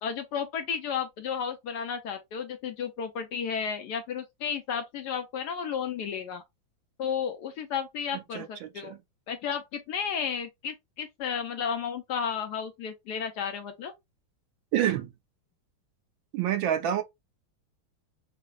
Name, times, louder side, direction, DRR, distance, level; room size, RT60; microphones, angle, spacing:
voice 1, 0.0-6.4 7.0-8.9 9.3-13.9, left 7 dB, 75° left, 0.9 m, -33 dB
voice 2, 8.1-9.0 14.7-15.1 16.3-17.0, right 10 dB, 75° right, 1.4 m, -28 dB
5.8 x 2.0 x 2.3 m
omnidirectional pair, 2.3 m